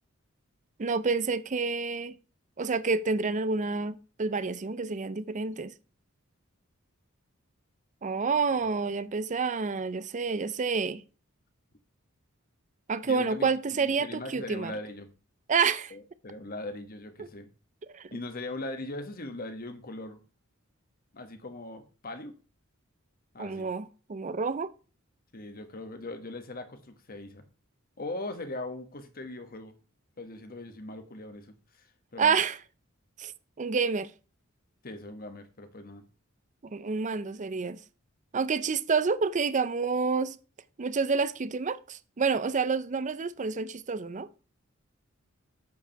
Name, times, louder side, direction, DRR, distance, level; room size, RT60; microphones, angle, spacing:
voice 1, 0.8-2.2 2.6-5.7 8.0-11.0 12.9-14.7 15.5-16.0 17.2-17.3 17.9-18.1 23.4-24.7 32.2-32.6 33.2-33.3 33.6-34.1 36.6-37.8 38.3-40.4 40.8-44.3, right 5 dB, 35° right, 0.5 m, -28 dB
voice 2, 13.0-15.1 15.9-17.5 18.1-20.2 21.1-22.3 23.3-23.7 25.3-27.4 28.0-29.7 30.2-32.4 34.8-36.0, left 2 dB, 45° left, 1.3 m, -40 dB
8.4 x 4.8 x 5.8 m
head